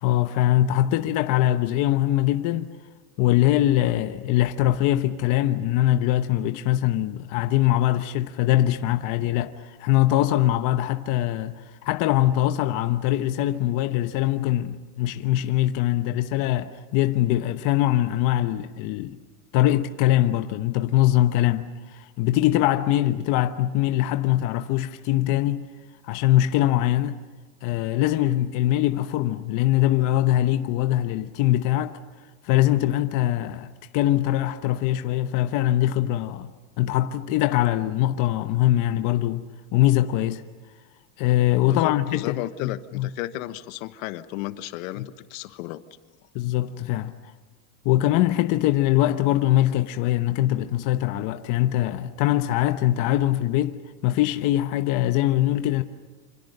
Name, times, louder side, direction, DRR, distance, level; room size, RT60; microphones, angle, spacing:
voice 1, 0.0-2.7 3.2-19.2 19.5-25.7 26.0-27.2 27.6-32.0 32.4-36.5 36.8-39.5 39.7-40.4 41.2-43.1 45.0-45.1 46.3-47.1 47.8-55.8, left 14 dB, 45° left, 1.0 m, -22 dB
voice 2, 41.7-45.8, left 15 dB, 65° left, 1.3 m, -34 dB
28.0 x 26.0 x 6.7 m
supercardioid pair, 150°, 44 cm